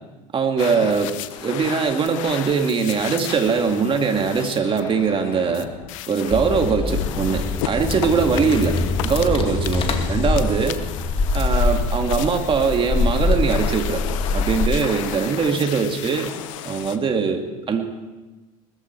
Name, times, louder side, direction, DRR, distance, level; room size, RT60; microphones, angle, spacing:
voice 1, 0.3-1.1 1.4-5.7 6.1-8.8 9.0-10.8 11.3-14.0 14.3-16.3 16.6-18.0, right 5 dB, 35° right, 5 dB, 2.3 m, -21 dB
sound 1, 0.6-17.0, left 12 dB, 85° left, 1.0 m, -34 dB
sound 2, 6.3-14.8, left 3 dB, 35° left, 2.2 m, -23 dB
20.0 x 14.0 x 4.6 m, 1.2 s
supercardioid pair, 90°, 16 cm